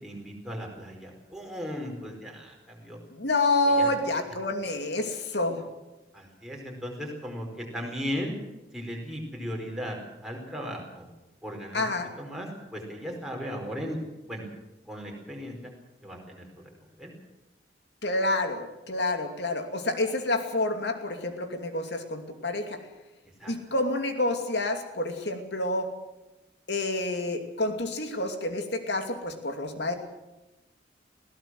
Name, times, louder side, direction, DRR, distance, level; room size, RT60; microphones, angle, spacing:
voice 1, 0.0-3.0 3.7-3.9 6.1-8.3 8.7-10.0 10.2-11.1 11.4-11.9 12.2-14.0 14.3-14.5 14.9-15.7 16.0-16.4 17.0-17.1 23.4-23.5, equal, 5° right, -1 dB, 4.6 m, -36 dB
voice 2, 3.1-5.6 11.7-12.1 18.0-22.8 23.5-25.9 26.7-29.9, left 2 dB, 70° left, 5 dB, 2.7 m, -28 dB
21.0 x 16.5 x 7.7 m, 1.0 s
head